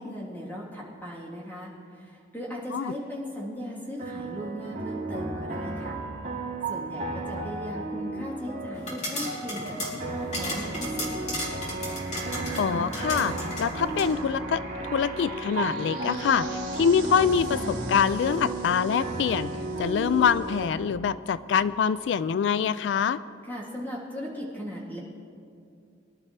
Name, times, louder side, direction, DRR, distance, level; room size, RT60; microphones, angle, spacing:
voice 1, 0.0-6.0 6.7-11.6 23.5-25.0, equal, 10° left, -6 dB, 3.2 m, -38 dB
sound 1, 3.2-3.7 4.0-20.7, right 2 dB, 45° right, 2.9 m, -34 dB
sound 2, 8.8-14.1, left 1 dB, 40° left, 3.3 m, -35 dB
voice 2, 12.6-19.5 19.8-23.2, left 7 dB, 90° left, 16 dB, 0.3 m, -25 dB
24.0 x 12.0 x 3.3 m, 2.5 s
head